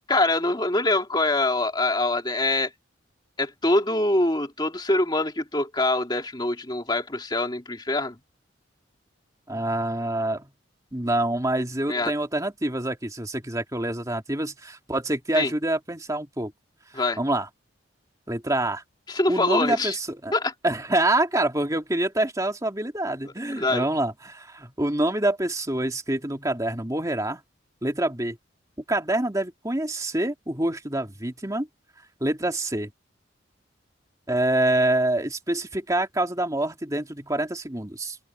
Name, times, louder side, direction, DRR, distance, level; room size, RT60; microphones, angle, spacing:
voice 1, 0.1-2.7 3.4-8.2 11.9-12.1 15.3-15.5 16.9-17.2 19.1-19.9 20.3-20.5 23.6-23.8, left 2 dB, 20° left, 2.4 m, -24 dB
voice 2, 9.5-10.5 10.9-16.5 17.2-17.5 18.3-18.8 19.3-20.3 20.6-27.4 27.8-28.4 28.9-31.7 32.2-32.9 34.3-38.2, right 1 dB, 15° right, 2.6 m, -26 dB
open air
head